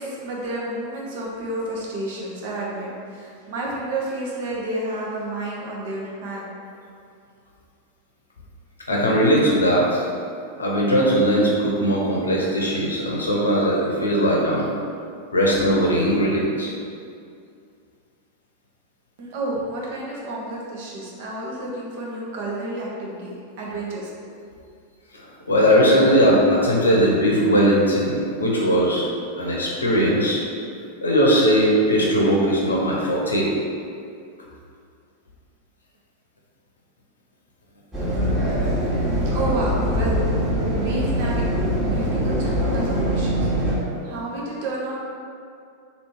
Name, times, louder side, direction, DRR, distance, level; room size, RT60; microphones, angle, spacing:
voice 1, 0.0-6.5 19.2-24.1 39.1-41.5 41.8-43.5 43.8-44.9, right 2 dB, 50° right, -4 dB, 0.9 m, -30 dB
voice 2, 8.9-10.1 10.6-14.7 15.3-16.7 25.1-29.1 29.4-30.4 31.0-33.5, equal, 75° left, -3 dB, 0.8 m, -19 dB
sound 1, 37.9-43.7, equal, 20° right, 1.2 m, -23 dB
3.3 x 2.7 x 4.5 m, 2.4 s
figure-of-eight pair, 90°, 0 cm